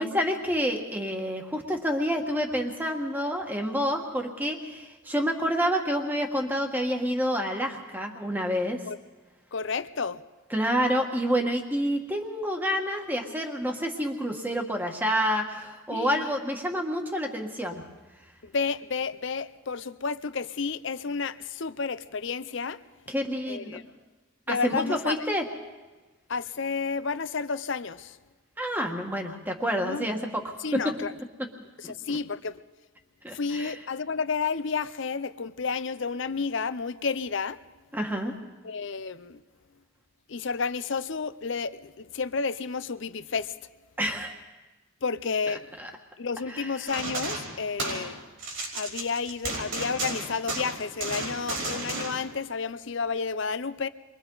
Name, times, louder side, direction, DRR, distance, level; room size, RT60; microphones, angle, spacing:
voice 1, 0.0-8.8 10.5-17.8 23.1-23.8 24.5-25.5 28.6-30.4 30.7-30.9 31.8-31.9 33.2-33.8 37.9-38.3 44.0-44.3 45.5-45.9 46.5-46.7, equal, 10° right, 1.6 m, -28 dB
voice 2, 9.5-10.2 15.9-16.3 18.4-22.8 23.5-23.8 24.5-25.2 26.3-28.2 29.8-30.1 30.6-31.1 31.8-32.6 33.3-37.6 38.6-39.4 40.3-43.5 45.0-45.7 46.2-48.2 48.7-53.9, left 5 dB, 55° left, 0.6 m, -31 dB
sound 1, 46.9-48.1 48.4-52.2, right 2 dB, 65° right, 5.2 m, -33 dB
29.5 x 23.5 x 4.0 m
head